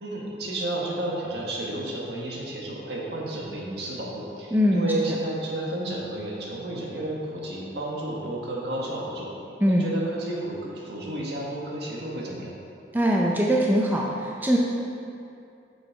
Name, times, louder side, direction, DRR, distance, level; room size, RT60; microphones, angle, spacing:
voice 1, 0.0-9.3 9.7-12.5, right 1 dB, 70° right, -3 dB, 1.6 m, -32 dB
voice 2, 4.5-4.9 9.6-9.9 12.9-14.6, equal, 10° right, -2 dB, 0.6 m, -22 dB
7.9 x 6.4 x 4.7 m, 2.6 s
head